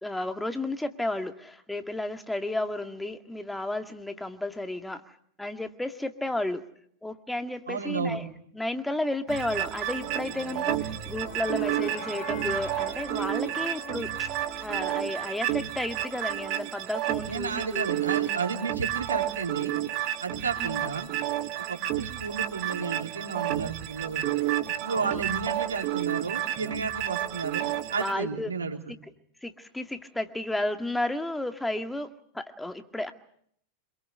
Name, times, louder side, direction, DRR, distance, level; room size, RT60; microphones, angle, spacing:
voice 1, 0.0-5.0 5.4-6.6 7.0-8.2 8.5-14.3 14.6-17.9 20.6-20.8 24.9-25.2 28.0-28.5 29.4-33.1, left 1 dB, 5° left, 7 dB, 2.0 m, -32 dB
voice 2, 7.7-8.2 17.3-19.8 20.2-21.1 21.7-24.3 24.7-28.8, right 5 dB, 80° right, 2 dB, 3.5 m, -32 dB
sound 1, 9.3-28.1, right 13 dB, 45° right, 1.7 m, -31 dB
sound 2, 9.9-16.1, left 5 dB, 45° left, 4.5 m, -44 dB
27.0 x 21.5 x 6.8 m, 0.67 s
figure-of-eight pair, 90°, 0 cm